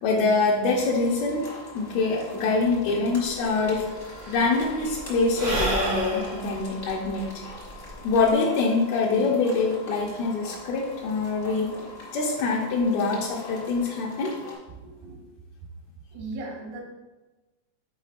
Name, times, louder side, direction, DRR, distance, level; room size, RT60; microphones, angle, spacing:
voice 1, 0.0-1.5 1.7-3.8 4.3-7.4 8.0-11.7 12.1-14.3, left 3 dB, 80° left, -4 dB, 1.6 m, -24 dB
sound 1, 0.7-14.5, left 2 dB, 55° left, 0.6 m, -43 dB
Sigh / Breathing, 3.3-3.4 3.6-8.3, right 1 dB, 55° right, 0.6 m, -32 dB
voice 2, 14.8-15.2 16.1-16.8, right 2 dB, 85° right, -1 dB, 3.1 m, -37 dB
8.3 x 4.9 x 2.5 m, 1.2 s
omnidirectional pair, 4.1 m